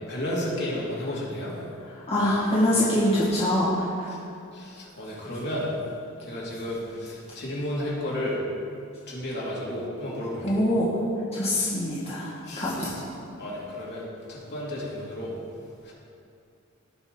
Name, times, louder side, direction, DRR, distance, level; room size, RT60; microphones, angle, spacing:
voice 1, 0.1-1.5 4.5-5.7 6.2-8.4 9.1-10.6 12.5-12.7 13.4-14.0 14.3-15.3 15.8-15.9, left 1 dB, 55° left, -6 dB, 2.7 m, -32 dB
voice 2, 1.8-4.1 10.4-11.0 11.3-13.1, left 1 dB, 30° left, -9 dB, 2.0 m, -25 dB
17.5 x 5.9 x 4.1 m, 2.5 s
head